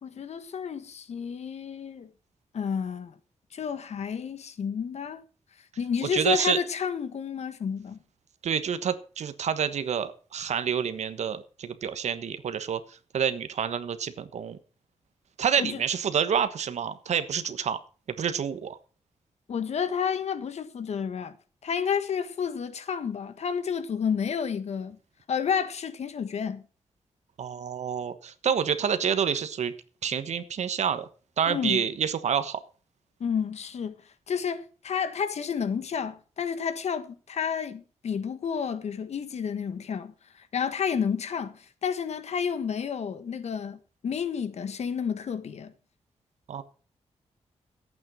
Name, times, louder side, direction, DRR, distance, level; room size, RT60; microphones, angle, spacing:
voice 1, 0.0-2.1 2.5-3.1 3.5-5.2 5.8-8.0 15.6-15.8 19.5-21.3 21.6-25.0 25.3-26.6 31.5-31.8 33.2-34.0 34.3-45.7, left 7 dB, 65° left, 1.5 m, -30 dB
voice 2, 6.0-6.6 8.4-12.8 13.1-14.6 15.4-17.8 18.1-18.8 27.4-29.7 30.0-31.1 31.4-32.6 46.5-46.6, right 7 dB, 75° right, 1.2 m, -28 dB
12.0 x 8.7 x 6.2 m
wide cardioid pair, 110°, 12 cm